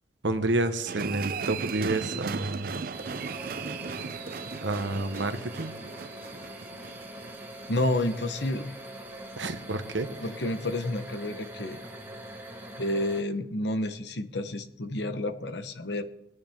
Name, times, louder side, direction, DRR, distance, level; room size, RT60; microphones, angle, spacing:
voice 1, 0.2-2.8 4.6-5.7 9.4-10.1, right 2 dB, 85° right, 9 dB, 1.1 m, -29 dB
sound 1, 0.9-8.1 8.5-8.6, right 5 dB, 50° right, 0.4 m, -37 dB
sound 2, 2.9-13.2, right 1 dB, 10° right, 1.7 m, -43 dB
voice 2, 7.7-8.7 10.2-11.8 12.8-16.0, left 1 dB, 70° left, 10 dB, 1.0 m, -30 dB
21.0 x 9.5 x 3.6 m, 0.85 s
head